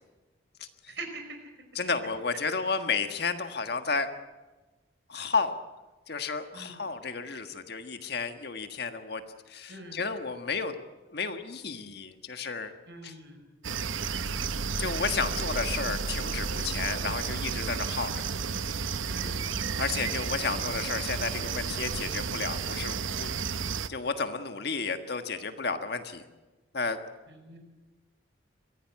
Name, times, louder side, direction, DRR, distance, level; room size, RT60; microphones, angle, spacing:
voice 1, 0.9-1.5 6.5-6.8 9.7-10.0 12.9-13.4 19.1-19.4 27.3-27.6, right 2 dB, 60° right, 5 dB, 5.0 m, -43 dB
voice 2, 1.7-4.1 5.1-5.6 6.1-9.2 9.5-10.7 11.1-12.7 13.0-13.1 14.8-18.2 19.8-23.3 23.9-26.2 26.7-27.0, left 4 dB, 55° left, 7 dB, 1.6 m, -32 dB
sound 1, 13.6-23.9, right 5 dB, 90° right, 0.9 m, -32 dB
23.5 x 16.0 x 8.7 m, 1.2 s
head